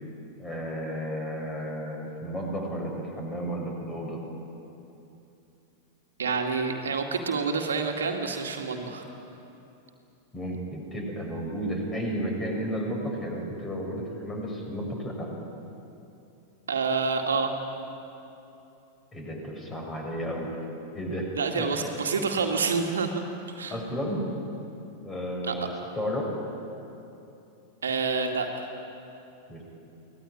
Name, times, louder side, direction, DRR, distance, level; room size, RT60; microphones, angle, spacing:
voice 1, 0.4-4.2 10.3-15.3 19.1-20.5 20.9-21.3 21.6-21.7 23.7-24.2 25.0-26.3 29.5-29.6, equal, 20° left, 1 dB, 6.6 m, -33 dB
voice 2, 6.2-9.1 16.7-17.5 21.4-23.1 23.6-23.8 25.5-25.6 27.8-28.6, right 4 dB, 70° right, 3 dB, 2.2 m, -28 dB
23.5 x 18.5 x 9.9 m, 2.8 s
figure-of-eight pair, 90°, 0 cm